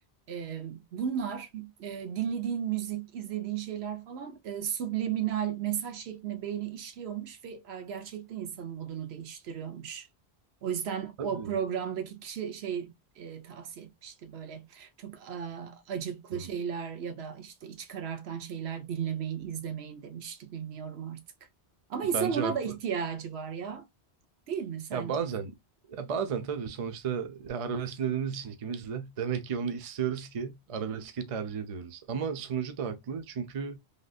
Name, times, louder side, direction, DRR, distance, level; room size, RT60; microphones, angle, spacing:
voice 1, 0.3-10.1 10.6-21.2 21.9-23.8 24.5-25.2, right 8 dB, 75° right, 0.9 m, -35 dB
voice 2, 11.2-11.5 16.3-16.5 22.1-22.7 24.9-25.5 25.9-33.8, right 6 dB, 40° right, 0.5 m, -33 dB
3.4 x 2.5 x 2.3 m
omnidirectional pair, 1.1 m